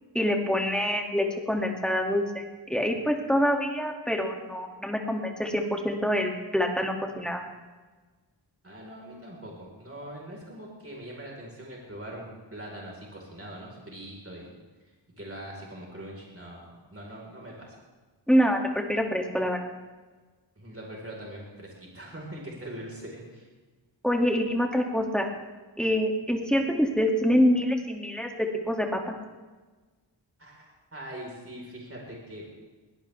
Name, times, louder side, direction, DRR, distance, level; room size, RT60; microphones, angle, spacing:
voice 1, 0.1-2.4 2.7-7.4 18.3-19.6 24.0-25.3 25.8-29.1, equal, ahead, 1 dB, 2.4 m, -26 dB
voice 2, 8.6-14.5 15.2-17.8 20.6-23.5 30.4-30.7 30.9-32.5, right 1 dB, 30° right, -3 dB, 4.6 m, -42 dB
22.5 x 17.0 x 3.5 m, 1.3 s
wide cardioid pair, 70°, 44 cm